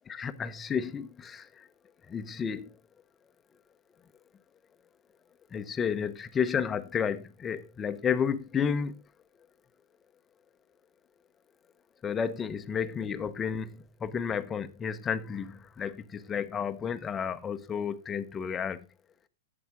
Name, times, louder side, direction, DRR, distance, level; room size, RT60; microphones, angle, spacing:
voice 1, 0.1-1.7 2.1-2.7 5.5-9.0 12.0-13.7 14.0-18.8, left 7 dB, 20° left, 0.9 m, -31 dB
12.0 x 8.7 x 3.6 m
hypercardioid pair, 115°, 0 cm